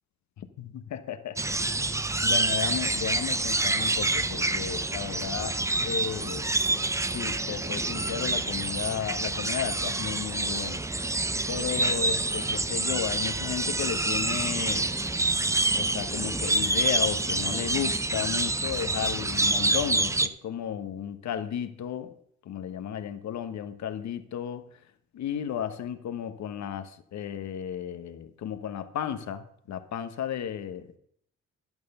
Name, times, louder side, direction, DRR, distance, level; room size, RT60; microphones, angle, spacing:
voice 1, 0.4-1.4 2.2-6.5 7.1-10.8 11.5-14.9 15.7-22.2 22.4-24.8 25.1-31.0, left 9 dB, 65° left, 9 dB, 1.2 m, -34 dB
sound 1, 1.4-20.3, right 2 dB, 10° right, 0.5 m, -27 dB
11.0 x 9.4 x 5.4 m, 0.65 s
cardioid pair, 90°, 30 cm